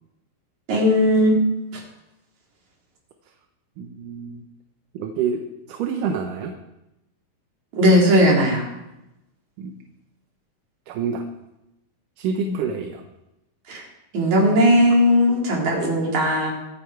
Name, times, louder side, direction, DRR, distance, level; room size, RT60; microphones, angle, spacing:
voice 1, 0.7-1.4 1.7-1.8 7.7-8.6 12.4-12.6 13.7-13.8 14.1-16.5, equal, 55° right, -1 dB, 4.3 m, -17 dB
voice 2, 3.8-4.4 4.9-5.4 5.7-6.5 9.6-9.8 10.9-11.2 12.2-13.0, right 6 dB, 70° right, 5 dB, 2.4 m, -27 dB
23.5 x 8.9 x 4.7 m, 0.93 s
omnidirectional pair, 4.1 m